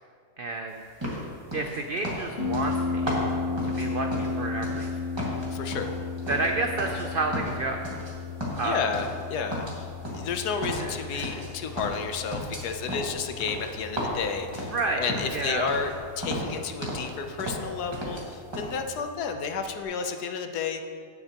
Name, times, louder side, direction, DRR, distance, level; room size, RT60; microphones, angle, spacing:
voice 1, 0.4-0.8 1.5-3.2 3.7-4.9 6.3-7.8 8.6-8.8 10.8-11.4 14.7-15.8, right 3 dB, 75° right, 3 dB, 0.5 m, -30 dB
sound 1, 1.0-4.9 5.2-7.1 7.3-8.1 8.4-9.2 9.5-11.5 11.8-15.4 15.7-15.9 16.2-17.1 17.4-18.2 18.5-18.7, equal, 15° right, 1.8 m, -34 dB
Harp, 2.4-19.8, left 4 dB, 50° left, 2.8 m, -35 dB
voice 2, 5.5-5.9 8.6-9.9 10.1-20.8, left 5 dB, 85° left, 6 dB, 1.3 m, -31 dB
17.5 x 6.8 x 2.9 m, 2.2 s
omnidirectional pair, 1.6 m